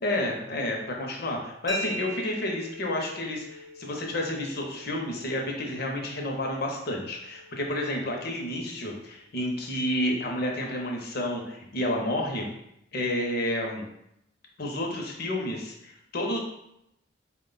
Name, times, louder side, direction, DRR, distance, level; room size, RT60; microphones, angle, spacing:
voice 1, 0.0-12.5 12.9-13.8 14.6-16.4, left 1 dB, 55° left, 1 dB, 0.7 m, -30 dB
sound 1, 1.7-9.2, left 1 dB, 20° right, 0.6 m, -42 dB
4.3 x 2.2 x 3.8 m, 0.80 s
head